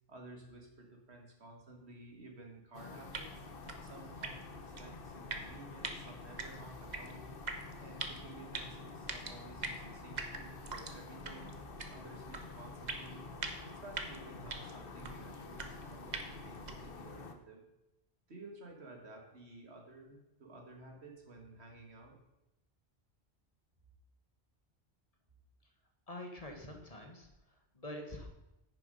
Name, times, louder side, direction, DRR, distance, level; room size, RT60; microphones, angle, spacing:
voice 1, 0.1-3.3 3.8-7.4 7.7-11.6 11.9-13.3 13.6-17.7 18.3-22.2, right 2 dB, 80° right, 2 dB, 2.1 m, -53 dB
sound 1, 2.7-17.3, left 4 dB, 60° left, 1.1 m, -49 dB
sound 2, 3.1-17.0, right 3 dB, 45° right, 1.0 m, -45 dB
voice 2, 26.1-28.3, left 1 dB, 35° left, 3 dB, 1.5 m, -46 dB
9.8 x 6.8 x 5.2 m, 0.93 s
omnidirectional pair, 1.1 m